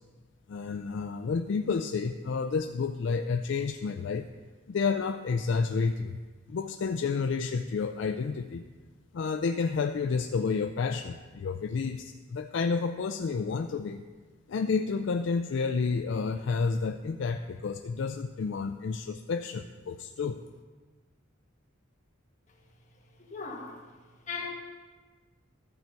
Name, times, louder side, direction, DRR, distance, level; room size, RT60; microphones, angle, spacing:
voice 1, 0.5-4.3 4.7-6.2 6.5-8.6 9.1-14.1 14.5-20.4, left 5 dB, 60° left, 7 dB, 0.3 m, -30 dB
voice 2, 23.2-23.8 24.3-24.5, left 4 dB, 35° left, -1 dB, 1.5 m, -37 dB
13.0 x 4.5 x 6.8 m, 1.4 s
head